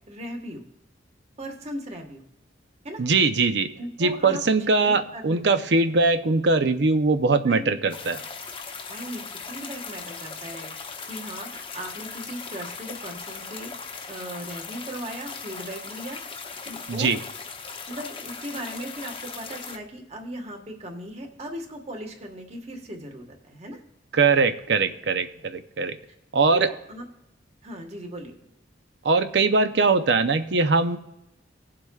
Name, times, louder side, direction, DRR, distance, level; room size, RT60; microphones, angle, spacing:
voice 1, 0.1-0.6 1.4-2.2 2.8-3.0 3.8-4.4 4.8-5.4 7.4-7.7 8.9-13.7 14.1-16.2 16.6-17.2 17.9-23.8 26.5-27.0 27.6-28.5, right 1 dB, 35° right, 3 dB, 1.5 m, -38 dB
voice 2, 3.0-3.7 4.0-8.2 16.9-17.2 24.1-26.0 26.3-26.7 29.0-31.0, right 3 dB, 60° right, 9 dB, 0.6 m, -21 dB
sound 1, 7.9-19.8, left 5 dB, 25° left, 0.7 m, -38 dB
18.5 x 7.6 x 2.4 m, 0.86 s
head